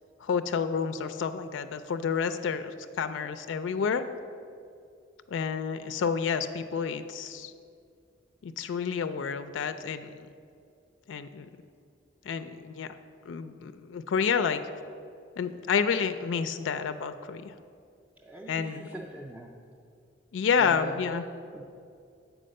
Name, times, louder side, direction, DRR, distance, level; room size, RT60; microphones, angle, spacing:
voice 1, 0.2-4.0 5.3-7.5 8.4-10.3 11.1-11.5 12.2-12.9 13.3-14.6 15.4-17.5 18.5-18.9 20.3-21.2, left 6 dB, 75° left, 10 dB, 0.3 m, -29 dB
voice 2, 18.2-19.6 20.5-21.1 21.5-21.6, right 1 dB, 10° right, -2 dB, 0.4 m, -41 dB
7.6 x 4.8 x 6.4 m, 2.4 s
head